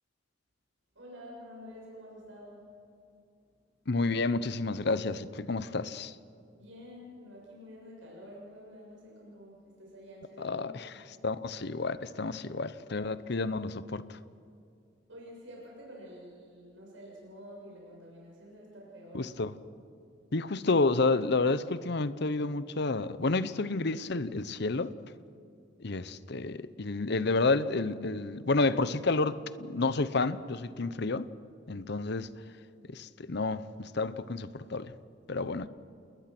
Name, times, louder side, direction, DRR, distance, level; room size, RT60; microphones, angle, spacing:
voice 1, 1.0-2.7 6.5-10.8 15.1-19.4, equal, 75° right, 7.0 m, -49 dB
voice 2, 3.9-6.1 10.4-10.7 11.2-14.0 19.1-19.5 20.3-24.9 25.8-31.3 31.7-32.3 32.9-34.9 35.3-35.7, left 3 dB, 60° left, 0.8 m, -30 dB
29.0 x 20.5 x 6.0 m
head